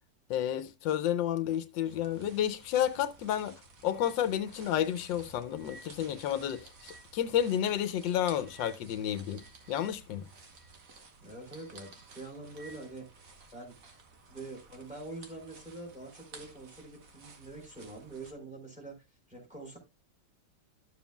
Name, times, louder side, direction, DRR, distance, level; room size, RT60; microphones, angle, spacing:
voice 1, 0.3-3.5 3.8-10.3, left 10 dB, 85° left, 1.4 m, -31 dB
sound 1, 1.9-18.3, right 4 dB, 50° right, 1.6 m, -55 dB
sound 2, 2.7-2.9 3.2-3.3 3.9-9.9 10.2-11.0 11.5-13.0 13.4-14.2, right 2 dB, 80° right, 2.4 m, -57 dB
voice 2, 11.2-13.8 14.3-19.8, right 2 dB, 5° right, 3.3 m, -45 dB
12.0 x 7.1 x 2.2 m
omnidirectional pair, 2.0 m